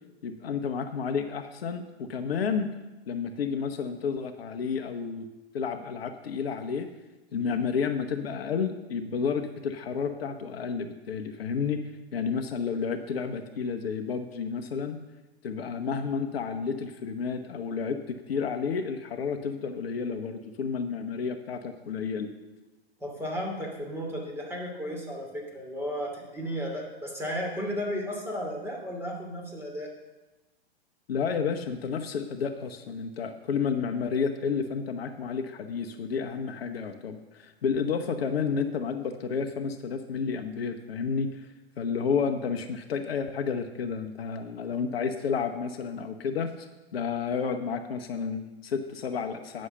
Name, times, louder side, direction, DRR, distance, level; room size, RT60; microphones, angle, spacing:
voice 1, 0.2-2.7 3.1-5.3 5.5-6.9 7.3-11.8 12.1-15.0 15.4-22.3 31.1-41.5 41.8-49.7, left 6 dB, 65° left, 7 dB, 0.9 m, -31 dB
voice 2, 23.0-29.9, equal, 5° right, -1 dB, 2.9 m, -34 dB
9.7 x 6.4 x 6.8 m, 1.1 s
figure-of-eight pair, 105°, 32 cm